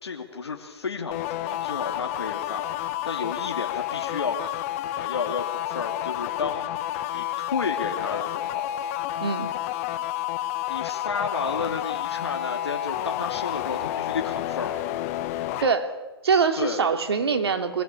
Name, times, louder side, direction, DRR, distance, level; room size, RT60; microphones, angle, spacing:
voice 1, 0.0-2.7 3.0-4.6 5.0-7.3 7.5-8.7 10.7-14.8 16.6-16.9, left 5 dB, 85° left, 1 dB, 2.8 m, -32 dB
sound 1, 1.1-15.7, left 13 dB, 35° left, 1.1 m, -30 dB
voice 2, 15.6-15.9 16.2-17.8, right 5 dB, 75° right, 7 dB, 2.9 m, -23 dB
23.0 x 17.5 x 8.4 m, 1.1 s
hypercardioid pair, 145°, 13 cm